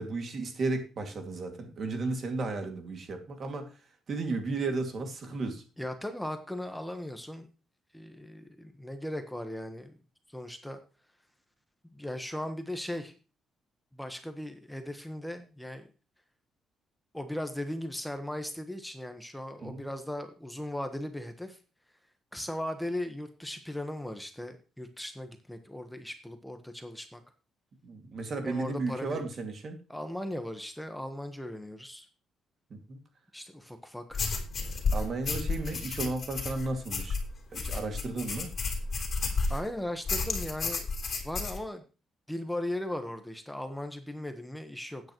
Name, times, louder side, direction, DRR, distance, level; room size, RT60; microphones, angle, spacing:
voice 1, 0.0-3.7 4.1-5.6 19.6-19.8 27.8-29.8 32.7-33.0 34.9-37.2 37.5-38.5, right 3 dB, 50° right, 5 dB, 2.3 m, -34 dB
voice 2, 5.8-7.5 7.9-10.0 10.3-10.8 11.9-13.1 13.9-15.9 17.1-21.6 22.3-27.2 28.4-29.2 29.9-32.1 33.3-34.2 34.6-34.8 39.5-40.9 41.2-41.8 42.3-45.0, left 1 dB, 5° left, 7 dB, 1.3 m, -38 dB
sound 1, 34.1-39.7 40.1-41.6, left 4 dB, 45° left, 3.4 m, -32 dB
13.0 x 9.2 x 3.1 m, 0.34 s
cardioid pair, 90°, 0 cm